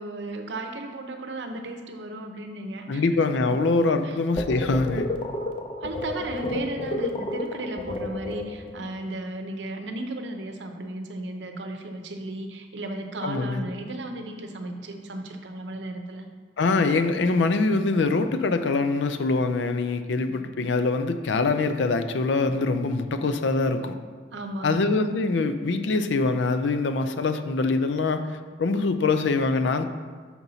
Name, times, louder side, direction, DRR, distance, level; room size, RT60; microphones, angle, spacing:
voice 1, 0.0-3.0 3.5-3.6 4.0-4.2 5.8-16.3 24.3-24.8, right 2 dB, 80° right, 5 dB, 0.7 m, -34 dB
voice 2, 2.9-5.1 13.2-13.7 16.6-23.9 24.6-29.9, left 3 dB, 85° left, 9 dB, 0.5 m, -24 dB
sound 1, 4.4-8.8, left 2 dB, 30° left, 0.5 m, -31 dB
6.0 x 4.0 x 5.6 m, 1.5 s
head